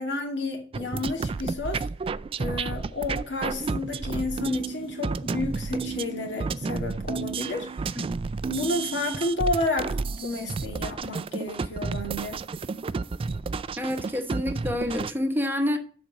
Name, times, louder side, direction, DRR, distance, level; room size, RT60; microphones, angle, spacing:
voice 1, 0.0-1.9 2.4-8.0 8.5-12.4, left 2 dB, 70° left, 2.5 m, -31 dB
sound 1, 0.7-15.1, right 4 dB, 30° right, 0.3 m, -31 dB
voice 2, 13.8-15.8, left 1 dB, 10° right, 1.0 m, -28 dB
7.5 x 5.2 x 6.3 m
head